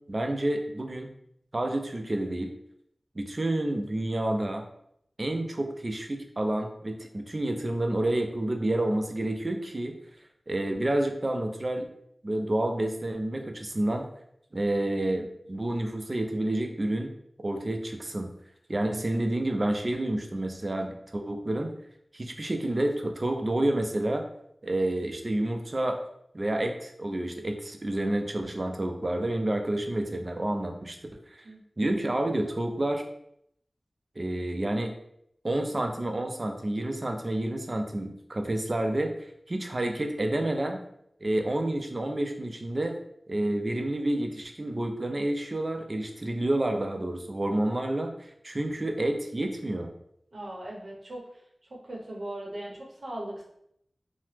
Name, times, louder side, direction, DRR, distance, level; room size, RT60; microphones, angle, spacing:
voice 1, 0.1-1.1 1.5-2.5 3.2-4.6 5.2-10.0 10.5-11.9 12.2-14.1 14.5-17.1 17.4-18.3 18.7-21.7 22.1-24.3 24.6-26.0 26.3-31.0 31.3-31.4 31.8-33.0 34.2-34.9 35.4-40.8 41.2-42.9 43.3-49.9, right 1 dB, 45° right, 4 dB, 0.4 m, -29 dB
voice 2, 50.3-51.4 51.7-53.4, right 1 dB, 70° right, -2 dB, 0.8 m, -39 dB
2.8 x 2.0 x 3.2 m, 0.73 s
wide cardioid pair, 50°, 0 cm